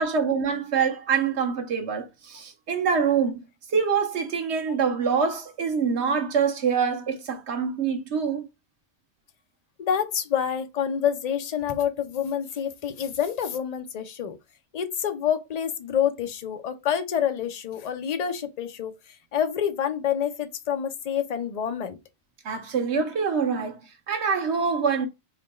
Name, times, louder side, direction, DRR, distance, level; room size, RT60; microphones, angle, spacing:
voice 1, 0.0-3.4 3.7-8.4 22.4-25.1, right 6 dB, 90° right, 1.2 m, -25 dB
voice 2, 9.8-14.4 14.7-22.0, left 9 dB, 50° left, 0.6 m, -27 dB
3.7 x 2.2 x 4.1 m
omnidirectional pair, 1.1 m